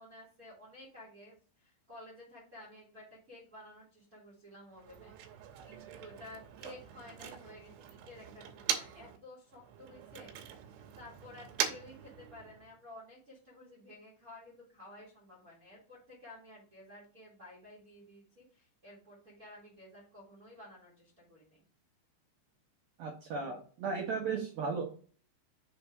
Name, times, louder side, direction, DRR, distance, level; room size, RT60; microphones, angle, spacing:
voice 1, 0.0-10.3 10.9-21.6, left 1 dB, 55° right, -4 dB, 0.9 m, -53 dB
Motor vehicle (road), 4.7-9.2 9.5-12.8, right 9 dB, 90° right, 3.3 m, -41 dB
voice 2, 23.0-24.8, right 5 dB, 75° right, -1 dB, 2.2 m, -35 dB
7.0 x 3.3 x 4.5 m, 0.42 s
omnidirectional pair, 5.6 m